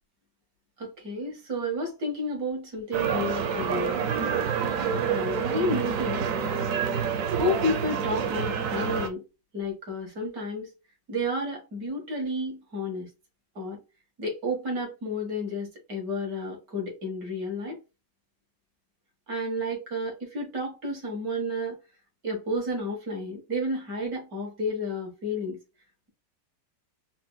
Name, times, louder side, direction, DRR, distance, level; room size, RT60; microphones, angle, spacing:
voice 1, 0.8-4.0 5.1-6.3 7.3-9.2 9.5-10.7 11.1-13.1 13.6-13.8 14.2-17.8 19.3-21.8 22.2-25.6, left 1 dB, 55° right, 1.7 m, -31 dB
sound 1, 2.9-9.1, right 7 dB, 70° right, 0.8 m, -28 dB
4.2 x 2.9 x 2.2 m
omnidirectional pair, 2.0 m